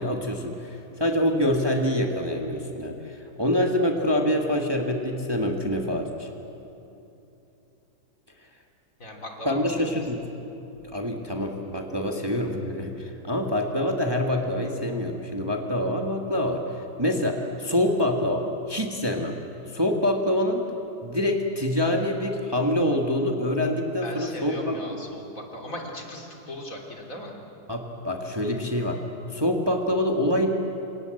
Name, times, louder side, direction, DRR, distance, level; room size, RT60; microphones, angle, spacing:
voice 1, 0.0-6.3 9.5-10.2 10.9-16.6 17.0-19.4 19.7-20.7 21.0-24.8 27.7-29.0 29.3-30.5, left 1 dB, 15° right, 2 dB, 1.8 m, -26 dB
voice 2, 9.0-9.9 24.0-27.3, left 1 dB, 55° left, 1 dB, 3.6 m, -37 dB
27.5 x 26.5 x 7.9 m, 2.9 s
omnidirectional pair, 1.7 m